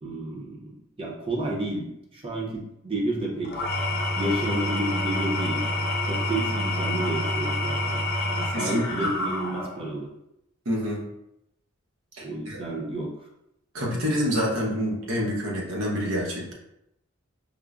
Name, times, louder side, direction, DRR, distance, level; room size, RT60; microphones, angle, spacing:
voice 1, 0.0-0.7 1.0-3.5 4.2-5.6 6.0-10.1 12.2-13.1, right 2 dB, 25° right, -2 dB, 0.6 m, -31 dB
Engine / Tools, 3.4-9.9, left 1 dB, 45° left, 0.5 m, -28 dB
voice 2, 8.5-9.1 10.6-11.0 12.2-12.6 13.7-16.5, equal, 80° right, -3 dB, 1.0 m, -27 dB
4.8 x 2.0 x 2.4 m, 0.82 s
head